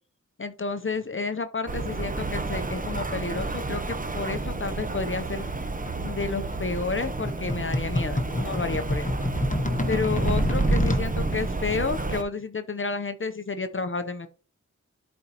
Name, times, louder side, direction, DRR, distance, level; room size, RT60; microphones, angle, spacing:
voice 1, 0.4-5.4 6.0-9.1 9.9-14.3, left 4 dB, 45° left, 9 dB, 0.7 m, -31 dB
Rain, 1.7-12.2, right 3 dB, 30° right, 0.7 m, -30 dB
sound 1, 5.4-11.1, left 1 dB, 25° left, 1.1 m, -29 dB
11.5 x 4.3 x 2.9 m, 0.37 s
wide cardioid pair, 60°, 29 cm